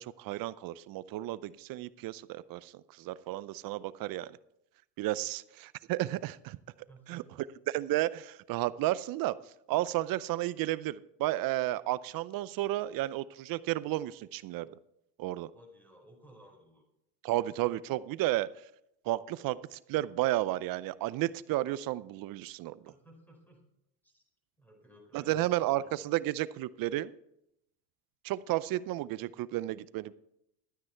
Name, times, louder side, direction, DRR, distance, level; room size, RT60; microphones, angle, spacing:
voice 1, 0.0-4.4 5.0-6.6 7.1-7.2 7.7-9.3 9.7-14.7 15.2-15.5 17.2-18.5 19.1-22.8 25.1-27.1 28.2-30.1, right 16 dB, 50° right, 18 dB, 0.6 m, -32 dB
voice 2, 6.9-7.5 15.5-16.8 22.8-23.6 24.0-24.2 24.6-26.2, equal, 5° left, 1 dB, 4.5 m, -57 dB
12.5 x 9.5 x 4.5 m, 0.79 s
supercardioid pair, 100°, 46 cm